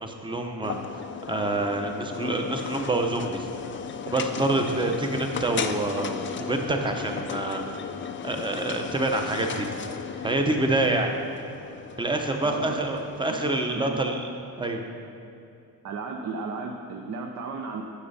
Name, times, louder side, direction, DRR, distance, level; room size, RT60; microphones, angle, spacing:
voice 1, 0.0-0.8 1.3-3.5 4.1-6.2 6.5-7.6 8.2-9.7 10.2-11.1 12.0-14.3 14.6-14.8, right 2 dB, 10° right, 3 dB, 0.8 m, -26 dB
sound 1, 0.6-13.3, left 7 dB, 30° left, 0.4 m, -36 dB
voice 2, 13.3-14.0 15.8-17.8, right 4 dB, 45° right, 2 dB, 0.7 m, -35 dB
9.9 x 6.9 x 4.1 m, 2.7 s
cardioid pair, 115°, 40 cm